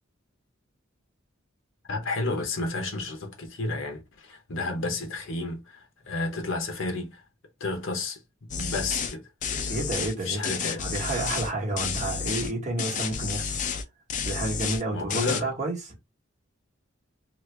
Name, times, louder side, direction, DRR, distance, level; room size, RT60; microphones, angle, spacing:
voice 1, 1.9-7.2 7.6-9.8 10.2-10.8 14.9-15.5, left 3 dB, 70° left, 1.0 m, -32 dB
sound 1, 8.5-9.1 9.4-10.1 10.4-11.5 11.8-12.5 12.8-13.8 14.1-14.8 15.1-15.4, left 6 dB, 40° left, 0.5 m, -30 dB
voice 2, 9.7-13.6 14.2-15.9, right 2 dB, 40° right, 1.3 m, -30 dB
3.0 x 2.5 x 3.2 m
head